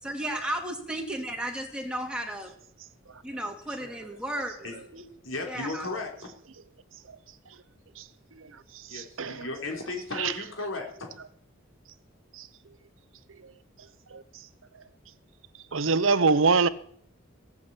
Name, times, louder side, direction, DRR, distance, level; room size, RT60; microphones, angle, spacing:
voice 1, 0.0-2.5 3.2-4.7 4.9-5.0 5.5-5.8, right 1 dB, 5° right, 2.9 m, -34 dB
voice 2, 5.2-6.3 8.9-11.1, left 3 dB, 80° left, 3.8 m, -35 dB
voice 3, 8.4-9.5 10.1-10.4 12.3-12.5 14.1-14.2 15.7-16.7, right 4 dB, 75° right, 0.9 m, -25 dB
16.5 x 8.4 x 8.4 m
head